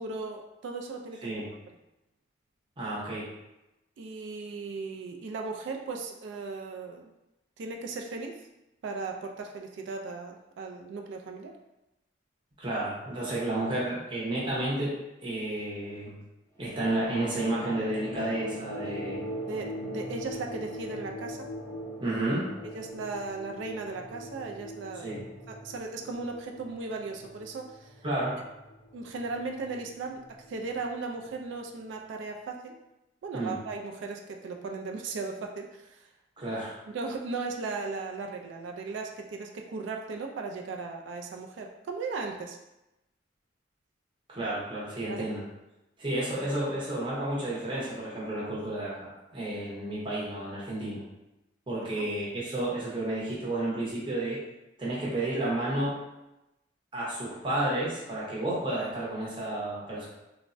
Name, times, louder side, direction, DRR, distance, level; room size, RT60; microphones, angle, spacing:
voice 1, 0.0-1.3 4.0-7.1 7.6-8.4 8.8-11.5 19.5-21.5 22.7-25.2 25.5-27.9 28.9-32.8 33.2-36.1 36.9-42.6 45.1-45.3, right 3 dB, 65° right, 3 dB, 0.3 m, -37 dB
voice 2, 2.8-3.3 12.6-16.1 16.6-19.2 22.0-22.5 25.0-25.2 28.0-28.4 33.3-33.6 36.4-36.7 44.3-45.4 46.0-51.0 51.7-54.4 54.8-55.9 56.9-60.1, right 1 dB, 25° right, -7 dB, 0.7 m, -31 dB
sound 1, 16.6-31.5, equal, 15° left, 0.6 m, -41 dB
3.2 x 2.0 x 2.5 m, 0.95 s
head